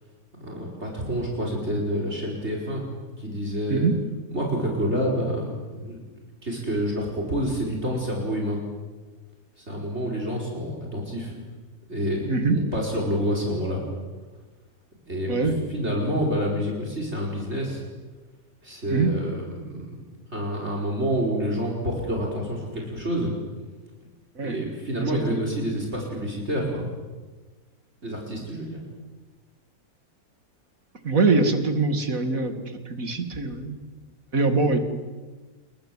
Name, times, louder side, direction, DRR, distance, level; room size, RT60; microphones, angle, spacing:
voice 1, 0.4-3.9 4.3-6.0 6.4-8.6 9.6-11.3 11.9-13.8 15.1-15.4 15.7-17.8 18.6-20.0 20.3-23.3 24.4-26.9 28.0-28.8, equal, 45° right, 0 dB, 5.2 m, -28 dB
voice 2, 12.3-12.6 15.3-15.6 18.9-19.1 24.3-24.6 25.0-25.5 31.0-33.8 34.3-34.8, right 3 dB, 65° right, 7 dB, 2.9 m, -23 dB
28.5 x 23.5 x 7.7 m, 1.3 s
omnidirectional pair, 1.6 m